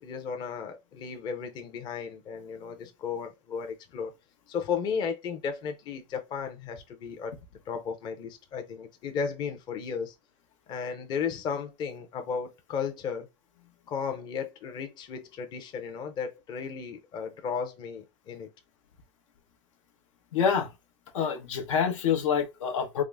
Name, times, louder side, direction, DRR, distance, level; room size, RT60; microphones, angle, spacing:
voice 1, 0.0-4.1 4.5-7.3 7.7-10.1 10.7-13.3 13.9-18.5, left 6 dB, 25° left, 0.6 m, -34 dB
voice 2, 20.3-20.7 21.1-23.0, left 7 dB, 85° left, 1.0 m, -26 dB
3.7 x 2.0 x 3.4 m
supercardioid pair, 155°, 16 cm